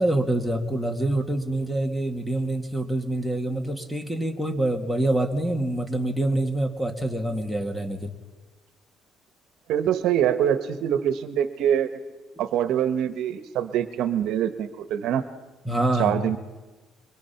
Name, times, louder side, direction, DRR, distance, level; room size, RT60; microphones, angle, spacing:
voice 1, 0.0-8.1 15.6-16.2, right 1 dB, ahead, 4 dB, 2.2 m, -26 dB
voice 2, 9.7-11.9 12.4-15.2 16.0-16.4, right 9 dB, 75° right, 10 dB, 1.2 m, -24 dB
24.5 x 24.0 x 5.9 m, 1.2 s
cardioid pair, 125°, 0 cm